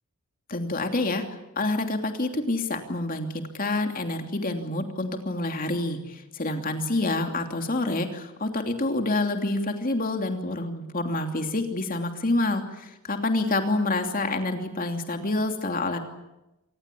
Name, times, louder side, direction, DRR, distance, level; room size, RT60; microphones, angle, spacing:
voice 1, 0.5-1.2 1.6-16.0, left 2 dB, 40° left, 5 dB, 2.9 m, -27 dB
26.5 x 19.5 x 8.6 m, 0.96 s
head